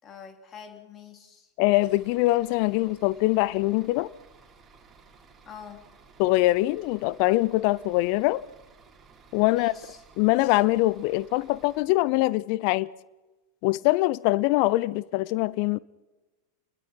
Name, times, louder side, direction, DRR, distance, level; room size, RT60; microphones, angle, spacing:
voice 1, 0.0-1.5 5.5-5.9 9.5-10.0, left 7 dB, 25° left, 3.4 m, -45 dB
voice 2, 1.6-4.1 6.2-8.4 9.3-9.7 10.2-12.9 13.6-15.8, left 19 dB, 45° left, 0.7 m, -23 dB
Bus / Idling, 1.8-11.8, right 4 dB, 20° right, 4.8 m, -55 dB
29.0 x 21.0 x 4.6 m
figure-of-eight pair, 90°, 0 cm